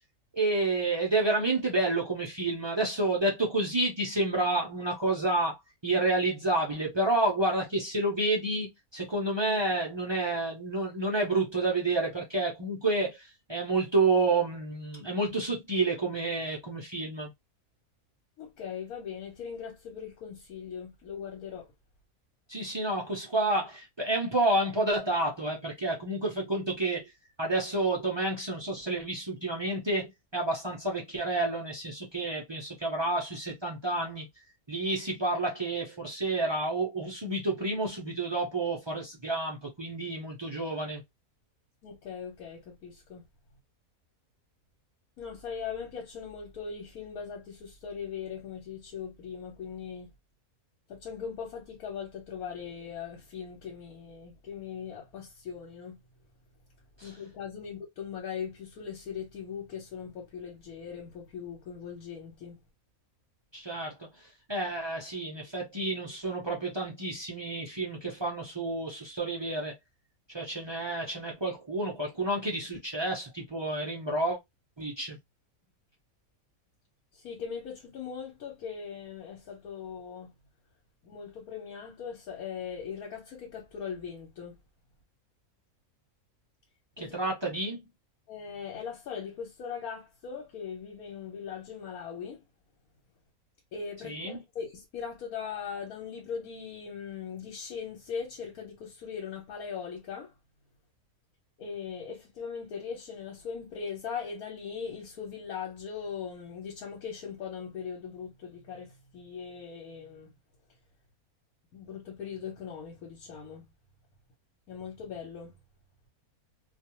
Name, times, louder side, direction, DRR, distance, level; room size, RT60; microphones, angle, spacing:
voice 1, 0.3-17.3 22.5-27.1 27.4-34.3 34.7-41.0 57.0-57.1 63.5-64.1 64.5-69.7 70.3-74.4 74.8-75.2 87.0-87.8 94.0-94.4, right 2 dB, 45° right, 0.3 m, -29 dB
voice 2, 18.4-21.7 41.8-43.2 45.2-50.1 50.9-56.0 57.0-62.6 77.1-80.3 81.0-84.6 87.0-87.2 88.3-92.4 93.7-100.3 101.6-110.3 111.7-113.6 114.7-115.6, left 7 dB, 80° left, 1.3 m, -40 dB
2.4 x 2.4 x 2.9 m
omnidirectional pair, 1.6 m